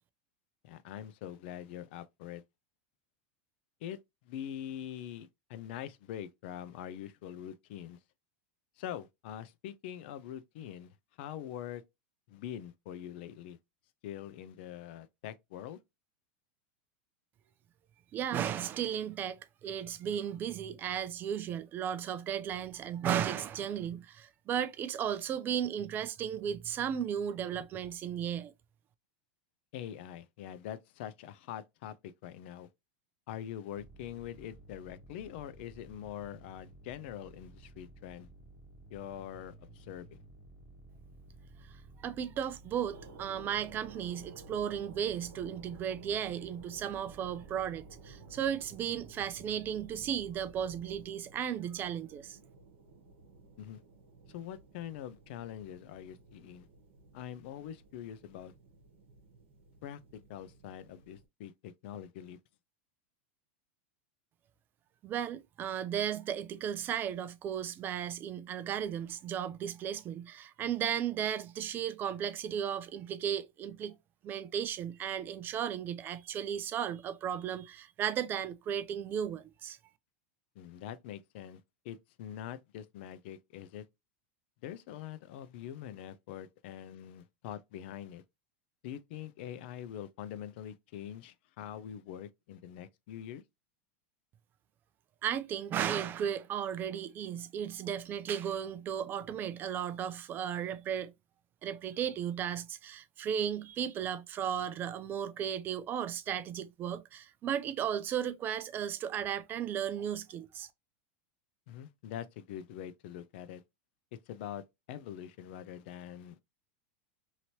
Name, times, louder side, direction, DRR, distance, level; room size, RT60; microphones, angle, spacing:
voice 1, 0.6-2.4 3.8-4.0 4.2-8.0 8.8-11.8 12.3-13.6 14.0-15.8 29.7-32.7 33.3-38.3 38.9-40.2 53.6-53.8 54.3-56.7 57.1-58.5 59.8-62.4 80.6-83.9 84.6-88.2 88.8-93.4 111.7-113.6 114.1-116.4, left 10 dB, 65° left, 0.5 m, -44 dB
voice 2, 18.1-28.5 42.0-52.4 65.0-73.9 74.2-79.8 95.2-101.1 101.6-110.7, right 9 dB, 30° right, 0.4 m, -35 dB
sound 1, 33.8-51.1, right 1 dB, 15° right, 1.1 m, -55 dB
sound 2, 42.9-61.3, right 3 dB, 90° right, 0.9 m, -56 dB
2.9 x 2.8 x 2.9 m
supercardioid pair, 130°, 6 cm